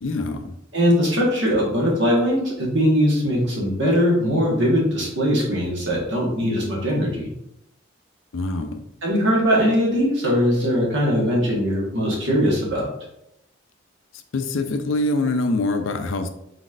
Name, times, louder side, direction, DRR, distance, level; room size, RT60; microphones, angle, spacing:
voice 1, 0.0-0.6 8.3-8.8 14.3-16.3, left 2 dB, 75° left, 7 dB, 0.5 m, -24 dB
voice 2, 0.7-7.3 9.0-12.9, equal, 65° right, -3 dB, 1.4 m, -20 dB
4.1 x 4.1 x 2.4 m, 0.80 s
head